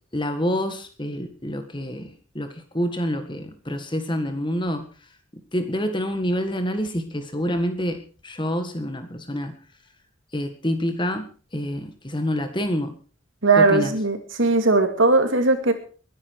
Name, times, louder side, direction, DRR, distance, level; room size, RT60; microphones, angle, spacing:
voice 1, 0.1-5.1 5.5-9.5 10.3-12.9 13.6-13.9, equal, 20° left, 8 dB, 1.7 m, -27 dB
voice 2, 13.4-15.7, right 3 dB, 65° right, 7 dB, 2.6 m, -18 dB
21.5 x 10.5 x 4.8 m, 0.41 s
head